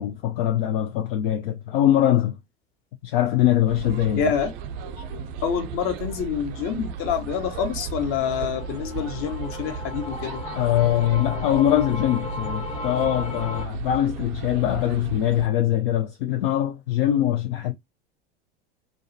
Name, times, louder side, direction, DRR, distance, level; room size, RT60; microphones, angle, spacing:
voice 1, 0.0-2.4 3.0-4.3 10.5-17.7, left 12 dB, 65° left, 0.5 m, -22 dB
sound 1, 3.7-15.5, right 6 dB, 45° right, 0.4 m, -35 dB
voice 2, 4.2-4.5 4.8-10.6, left 7 dB, 45° left, 0.9 m, -27 dB
sound 2, 7.9-13.7, left 3 dB, 25° left, 0.7 m, -36 dB
2.3 x 2.1 x 2.6 m
hypercardioid pair, 90°, 30 cm